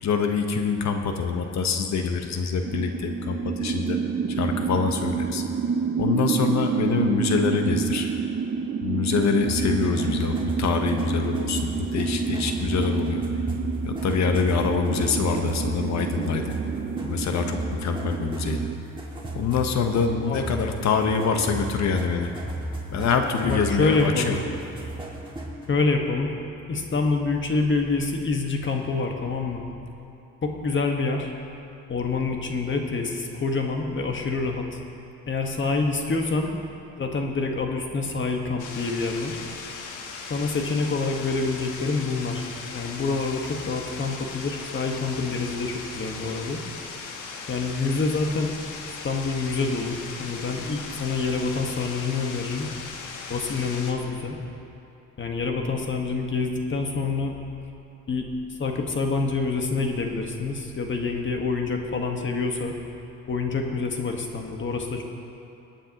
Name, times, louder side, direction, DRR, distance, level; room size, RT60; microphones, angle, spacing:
voice 1, 0.0-4.0 4.3-5.4 6.0-8.1 8.8-13.2 13.8-16.5 17.0-18.7 19.3-22.3 22.9-24.4, left 5 dB, 65° left, 5 dB, 1.1 m, -25 dB
sound 1, 2.6-18.8, right 6 dB, 35° right, 0.4 m, -28 dB
sound 2, 9.5-25.7, right 2 dB, 15° right, 2.1 m, -34 dB
voice 2, 23.4-24.4 25.7-26.3 26.7-29.6 30.4-31.3 31.9-34.8 35.3-36.5 36.9-39.4 40.3-46.6 47.5-48.5 48.8-52.7 53.3-54.4 55.2-57.3 58.1-62.7 63.3-65.0, left 3 dB, 40° left, 2 dB, 1.5 m, -27 dB
sound 3, 38.6-53.9, left 5 dB, 85° left, 1.2 m, -38 dB
22.0 x 8.9 x 3.0 m, 2.8 s
cardioid pair, 90°, 30 cm